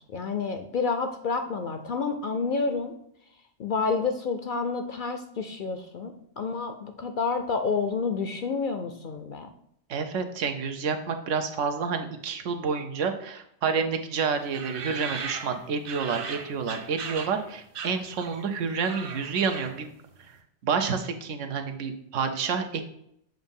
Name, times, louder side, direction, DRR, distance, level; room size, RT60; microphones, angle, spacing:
voice 1, 0.1-2.9 3.6-9.5, left 4 dB, 60° left, 7 dB, 0.5 m, -29 dB
voice 2, 9.9-19.9 20.3-20.4 20.6-22.8, right 5 dB, 85° right, 6 dB, 1.1 m, -29 dB
sound 1, 14.5-17.4 17.7-18.5 18.7-19.9, right 5 dB, 55° right, 0.8 m, -37 dB
7.5 x 2.7 x 5.3 m, 0.73 s
omnidirectional pair, 1.2 m